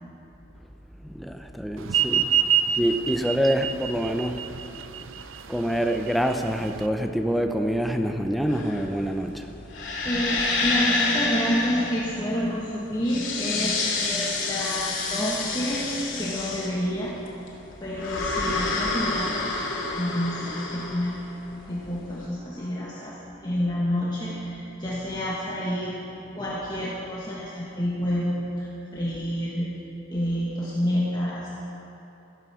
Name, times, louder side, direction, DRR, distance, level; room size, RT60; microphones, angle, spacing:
voice 1, 1.0-2.3 2.8-4.5 5.5-9.5, equal, ahead, 5 dB, 0.6 m, -26 dB
voice 2, 1.9-2.3 10.0-15.9 16.2-17.2 17.8-21.1 21.7-26.0 26.4-29.7 30.1-31.5, equal, 20° left, -6 dB, 1.5 m, -29 dB
sound 1, 1.9-6.9, right 9 dB, 85° right, 0.5 m, -26 dB
sound 2, 8.5-22.1, left 3 dB, 75° left, 2.8 m, -28 dB
14.5 x 11.0 x 7.1 m, 2.9 s
head